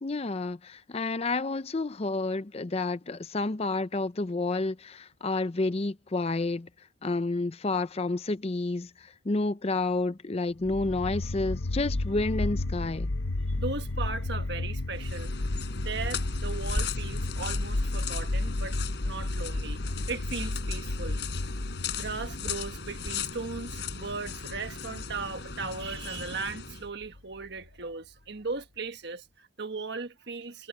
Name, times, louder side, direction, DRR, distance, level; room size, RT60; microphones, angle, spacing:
voice 1, 0.0-6.7 7.0-13.1, left 2 dB, 30° left, 0.5 m, -30 dB
sound 1, 10.6-27.7, left 2 dB, 90° left, 1.0 m, -33 dB
voice 2, 13.6-15.3 15.7-21.2 22.0-30.7, right 4 dB, 60° right, 1.5 m, -37 dB
sound 2, 14.9-26.9, left 5 dB, 60° left, 5.1 m, -37 dB
head